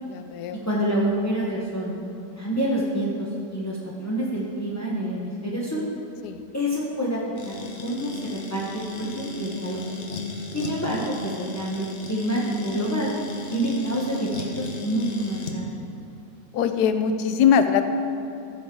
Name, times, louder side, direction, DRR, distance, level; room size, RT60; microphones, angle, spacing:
voice 1, 0.1-0.6 6.2-6.5 16.5-17.8, left 7 dB, 75° left, 9 dB, 1.1 m, -21 dB
voice 2, 0.6-2.0 2.4-5.8 6.5-7.5 7.8-9.8 10.5-13.1 13.5-15.7, right 1 dB, 20° left, -5 dB, 0.4 m, -27 dB
sound 1, 7.4-15.6, left 3 dB, 50° left, 1.0 m, -35 dB
14.0 x 6.2 x 3.7 m, 2.7 s
omnidirectional pair, 1.8 m